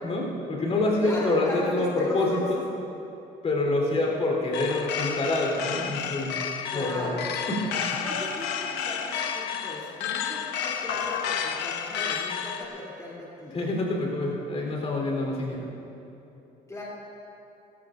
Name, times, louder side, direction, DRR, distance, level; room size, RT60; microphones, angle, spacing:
voice 1, 0.0-2.6 3.4-6.3 6.7-7.1 7.5-7.7 13.5-15.6, left 2 dB, 40° left, -2 dB, 3.8 m, -26 dB
voice 2, 1.0-2.4 6.7-7.4 8.0-13.6 16.7-16.8, left 2 dB, 20° left, -7 dB, 3.3 m, -37 dB
sound 1, 4.5-12.7, left 7 dB, 85° left, 1.0 m, -31 dB
20.0 x 16.0 x 2.6 m, 3.0 s
cardioid pair, 110°, 17 cm